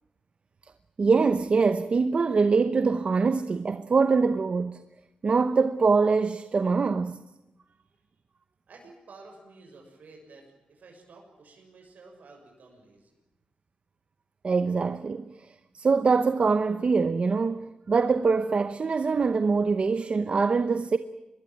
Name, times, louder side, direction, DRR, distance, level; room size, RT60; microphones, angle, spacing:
voice 1, 1.0-4.8 5.2-7.2 14.4-21.0, right 4 dB, 45° right, 0.9 m, -24 dB
voice 2, 8.7-13.1, right 3 dB, 80° right, 6.7 m, -51 dB
25.0 x 21.5 x 9.3 m
wide cardioid pair, 105°, 3 cm